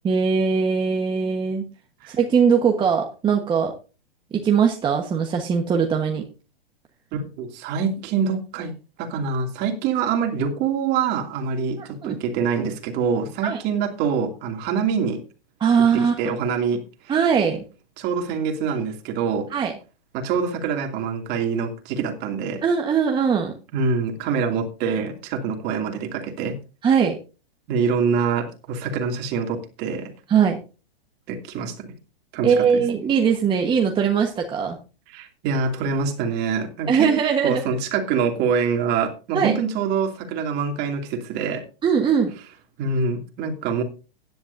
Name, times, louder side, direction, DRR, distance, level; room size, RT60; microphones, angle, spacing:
voice 1, 0.0-1.6 2.1-3.7 4.3-6.2 11.8-12.2 13.4-13.6 15.6-16.4 17.1-17.6 19.5-19.7 22.6-23.5 26.8-27.1 30.3-30.6 32.4-34.8 36.9-37.6 39.3-39.5 41.8-42.3, right 6 dB, 15° right, 2 dB, 1.3 m, -20 dB
voice 2, 7.1-8.7 9.0-15.2 15.9-17.1 18.0-19.5 20.1-22.6 23.7-26.6 27.7-30.1 31.3-31.9 32.3-32.8 35.1-37.1 37.4-41.6 42.8-43.8, right 6 dB, 35° right, 4 dB, 2.7 m, -25 dB
16.0 x 10.5 x 2.7 m, 0.33 s
hypercardioid pair, 140°, 29 cm